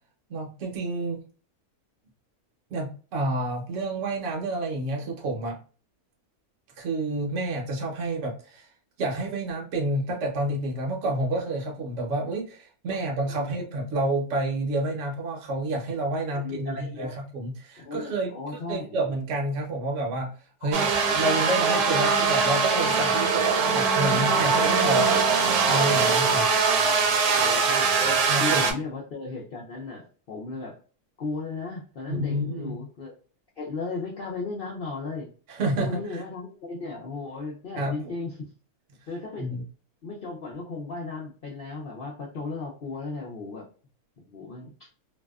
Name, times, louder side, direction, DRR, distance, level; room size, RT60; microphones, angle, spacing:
voice 1, 0.3-1.2 2.7-5.6 6.8-8.7 9.0-18.3 18.7-20.3 20.6-26.4 28.3-28.7 32.1-32.8 35.5-36.2 37.7-37.9 39.4-39.6, right 2 dB, 60° right, 0 dB, 1.0 m, -29 dB
voice 2, 13.3-13.7 16.3-17.2 17.8-18.9 20.6-21.1 26.8-26.9 27.4-28.0 28.4-30.8 31.2-33.1 33.6-35.3 35.8-38.4 39.1-39.5 40.0-43.6 44.3-44.9, left 3 dB, 60° left, -3 dB, 0.6 m, -36 dB
sound 1, 20.7-28.7, right 5 dB, 85° right, 1.1 m, -22 dB
2.6 x 2.2 x 2.3 m, 0.38 s
omnidirectional pair, 1.6 m